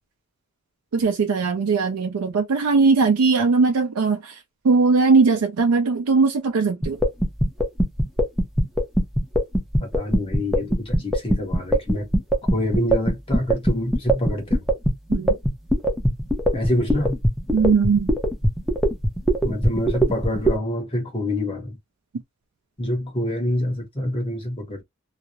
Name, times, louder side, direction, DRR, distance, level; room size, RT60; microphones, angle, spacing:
voice 1, 0.9-7.0 15.1-15.3 17.5-18.1, right 4 dB, 85° right, 0.4 m, -19 dB
sound 1, 6.8-20.6, right 1 dB, ahead, 0.6 m, -20 dB
voice 2, 9.8-12.1 12.5-14.6 16.5-17.1 19.4-21.8 22.8-24.8, left 1 dB, 25° left, 1.0 m, -26 dB
2.3 x 2.0 x 2.7 m
head